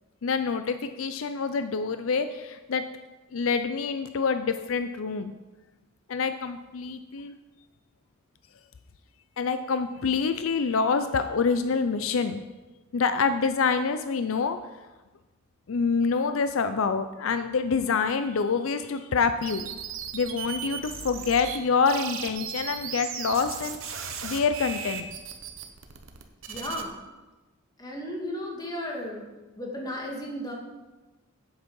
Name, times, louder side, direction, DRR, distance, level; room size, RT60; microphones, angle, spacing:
voice 1, 0.2-2.8 3.3-5.3 6.1-7.3 9.4-12.4 12.9-14.6 15.7-19.7 20.1-23.9 24.2-25.1, left 5 dB, 75° left, 10 dB, 0.5 m, -26 dB
sound 1, 19.4-21.6 21.8-26.8, right 7 dB, 70° right, 1.0 m, -36 dB
voice 2, 26.5-26.9 27.8-29.2 29.6-30.5, equal, 20° left, -1 dB, 1.9 m, -34 dB
8.1 x 7.8 x 5.4 m, 1.1 s
head